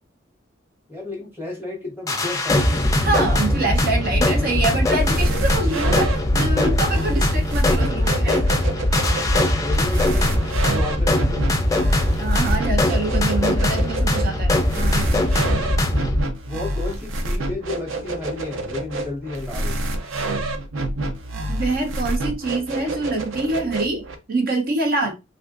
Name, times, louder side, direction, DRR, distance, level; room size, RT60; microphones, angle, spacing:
voice 1, 0.9-2.9 9.5-11.5 16.4-19.8, left 3 dB, 10° right, 1.2 m, -32 dB
sound 1, 2.1-16.2, left 1 dB, 15° left, 0.4 m, -20 dB
voice 2, 3.0-8.4 12.2-15.5 21.5-25.1, right 2 dB, 50° right, 0.8 m, -25 dB
sound 2, 4.9-24.1, right 1 dB, 90° right, 0.6 m, -28 dB
3.5 x 2.4 x 2.4 m
head